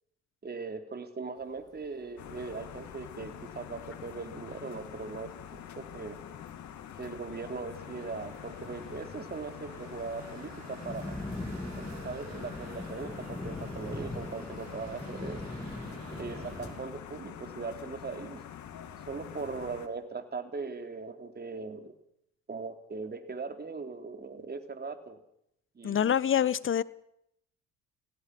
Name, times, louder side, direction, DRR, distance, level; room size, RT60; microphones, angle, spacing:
voice 1, 0.4-6.2 7.0-11.1 11.8-15.5 16.2-18.4 19.1-21.9 22.5-25.2 25.8-26.1, right 4 dB, 30° right, 7 dB, 3.5 m, -40 dB
sound 1, 1.4-1.5 1.8-1.9 2.1-2.5 2.8-2.9 3.1-3.5 4.0-4.2 4.6-4.7 5.1-5.2 5.8-6.2 6.6-7.1 7.4-8.4 8.6-16.7, left 2 dB, 10° left, 3.3 m, -41 dB
sound 2, 2.2-19.9, left 10 dB, 60° left, 2.5 m, -46 dB
sound 3, 7.7-16.8, right 5 dB, 55° right, 6.2 m, -51 dB
voice 2, 25.8-26.8, left 9 dB, 40° left, 19 dB, 1.1 m, -26 dB
27.0 x 17.0 x 6.2 m, 0.75 s
supercardioid pair, 75°, 32 cm